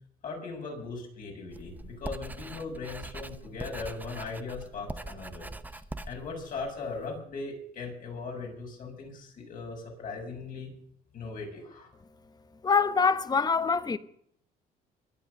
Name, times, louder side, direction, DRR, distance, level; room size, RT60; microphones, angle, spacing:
voice 1, 0.2-5.8 6.1-10.7 11.1-11.9, left 4 dB, 55° left, 6.9 m, -39 dB
Writing, 1.5-7.2, right 2 dB, 10° right, 0.8 m, -42 dB
voice 2, 12.6-14.0, left 5 dB, 25° left, 1.0 m, -24 dB
23.0 x 7.9 x 6.6 m
cardioid pair, 110°, 17 cm